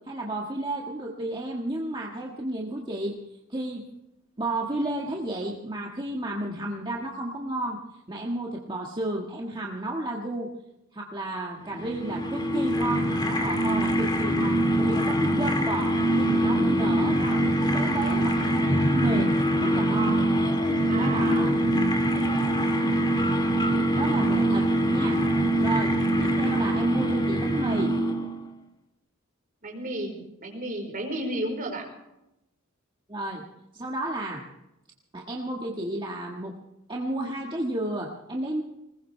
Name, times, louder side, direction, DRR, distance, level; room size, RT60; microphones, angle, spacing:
voice 1, 0.1-3.2 3.5-3.8 4.4-7.8 8.1-10.5 10.9-19.3 19.6-20.2 21.0-21.6 24.0-25.2 25.6-27.9 33.1-33.4 33.7-34.4 35.1-36.5 36.9-38.6, right 1 dB, 20° right, -2 dB, 1.7 m, -32 dB
sound 1, 11.7-28.4, right 1 dB, 20° left, 2.2 m, -24 dB
voice 2, 20.9-21.8 29.6-31.9, right 1 dB, 40° right, 2 dB, 4.7 m, -33 dB
21.0 x 20.5 x 3.4 m, 0.88 s
head